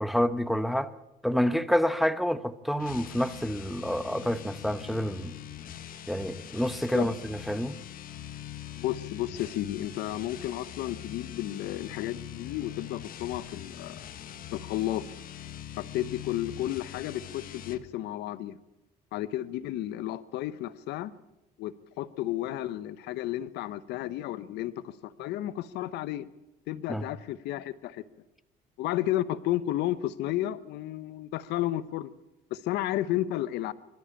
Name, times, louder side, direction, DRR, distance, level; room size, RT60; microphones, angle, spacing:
voice 1, 0.0-0.9 1.2-5.3 6.1-7.7 26.9-27.0, equal, ahead, 1.0 m, -28 dB
sound 1, 2.8-17.9, left 10 dB, 55° left, 1.4 m, -43 dB
voice 2, 8.8-14.1 14.5-15.0 15.8-18.6 19.1-21.1 21.6-26.3 26.7-28.0 28.8-32.1 32.5-33.7, left 14 dB, 85° left, 1.0 m, -32 dB
25.0 x 13.0 x 8.5 m
cardioid pair, 110°, 17 cm